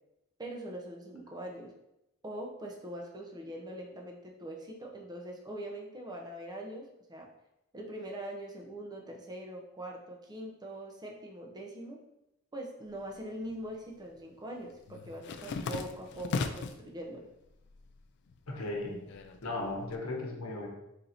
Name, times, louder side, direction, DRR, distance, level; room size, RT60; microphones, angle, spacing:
voice 1, 0.4-1.7 2.2-7.3 7.7-12.0 12.5-17.3, right 1 dB, 20° right, 0 dB, 0.6 m, -42 dB
sound 1, 13.0-13.8 14.1-16.9 17.3-18.0 18.3-19.9, left 4 dB, 55° left, 0.3 m, -38 dB
voice 2, 18.5-20.7, left 2 dB, 85° left, 0 dB, 0.9 m, -37 dB
4.0 x 2.6 x 4.2 m, 0.87 s
head